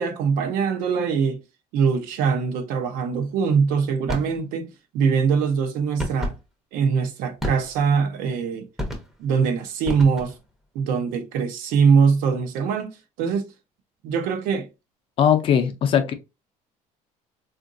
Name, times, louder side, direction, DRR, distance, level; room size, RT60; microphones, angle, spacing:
voice 1, 0.0-1.4 1.7-6.3 6.7-8.6 9.2-10.3 10.7-13.5 14.0-14.7, right 6 dB, 80° right, 0.7 m, -22 dB
sound 1, 4.1-4.4 6.0-6.4 7.4-7.9 8.8-9.3 9.8-10.5, left 1 dB, 5° right, 0.6 m, -30 dB
voice 2, 15.2-16.1, left 8 dB, 40° left, 0.5 m, -19 dB
3.8 x 2.5 x 2.5 m
cardioid pair, 170°, 14 cm